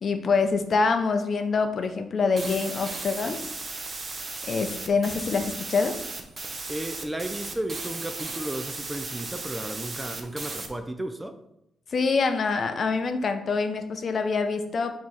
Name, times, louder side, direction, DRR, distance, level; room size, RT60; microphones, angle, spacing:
voice 1, 0.0-3.4 4.5-6.0 11.9-14.9, left 4 dB, 50° left, 0.5 m, -25 dB
sound 1, 2.4-10.7, right 3 dB, 35° right, 0.7 m, -36 dB
voice 2, 6.7-11.4, right 1 dB, 10° right, 0.4 m, -34 dB
4.7 x 2.9 x 3.9 m
cardioid pair, 85°, 0 cm